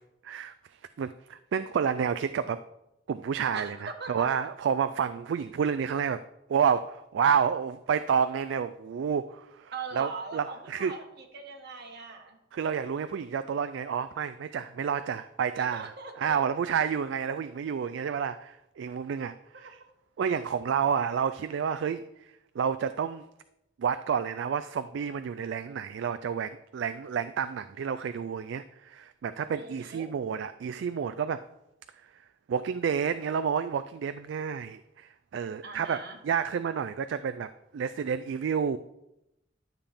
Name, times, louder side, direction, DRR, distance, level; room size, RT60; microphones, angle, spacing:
voice 1, 0.2-0.5 1.0-2.6 3.1-6.2 6.5-10.9 12.5-15.9 16.2-19.8 20.2-22.3 22.6-23.3 23.8-31.4 32.1-32.2 32.5-36.0 36.2-38.8, right 7 dB, 75° right, 12 dB, 0.3 m, -30 dB
voice 2, 3.5-4.3 9.7-12.4 15.5-16.3 19.6-19.7 29.5-30.1 35.6-36.2, right 4 dB, 60° right, 3 dB, 1.3 m, -41 dB
11.5 x 7.1 x 3.5 m, 0.88 s
head